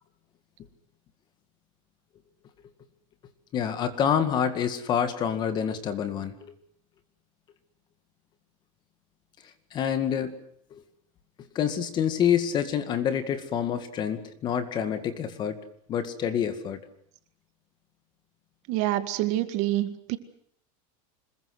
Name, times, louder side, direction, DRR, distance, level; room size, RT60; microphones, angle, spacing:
voice 1, 3.5-6.5 9.4-10.4 10.7-10.8 11.5-15.6 15.9-16.8, left 8 dB, 25° left, 10 dB, 2.1 m, -27 dB
voice 2, 18.7-20.2, right 15 dB, 40° right, 10 dB, 2.0 m, -27 dB
26.0 x 21.5 x 7.9 m, 0.68 s
supercardioid pair, 175°, 18 cm